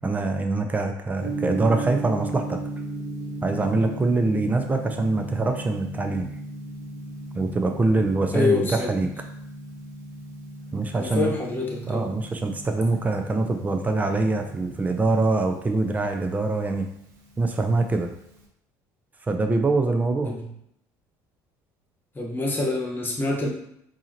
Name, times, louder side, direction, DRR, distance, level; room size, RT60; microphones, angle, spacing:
voice 1, 0.0-2.6 3.4-6.3 7.3-9.1 10.7-11.3 11.9-16.9 17.4-18.1 19.3-20.3, right 3 dB, 20° right, 4 dB, 0.5 m, -24 dB
Gong, 1.2-18.5, right 2 dB, 90° right, 0.8 m, -37 dB
voice 2, 8.3-8.9 10.9-12.1 20.2-20.5 22.1-23.5, left 3 dB, 25° left, -1 dB, 1.2 m, -26 dB
4.6 x 2.8 x 2.9 m, 0.74 s
supercardioid pair, 80°, 9 cm